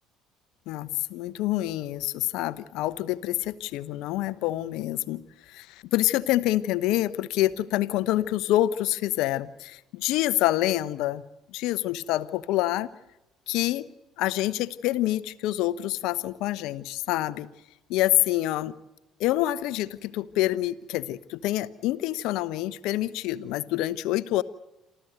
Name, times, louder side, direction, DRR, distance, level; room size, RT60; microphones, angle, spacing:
voice 1, 0.7-11.2 11.5-12.9 13.5-13.9 14.2-17.5 17.9-18.7 19.2-24.4, left 15 dB, 70° left, 16 dB, 0.9 m, -27 dB
28.0 x 13.5 x 8.1 m, 0.98 s
hypercardioid pair, 60°, 0 cm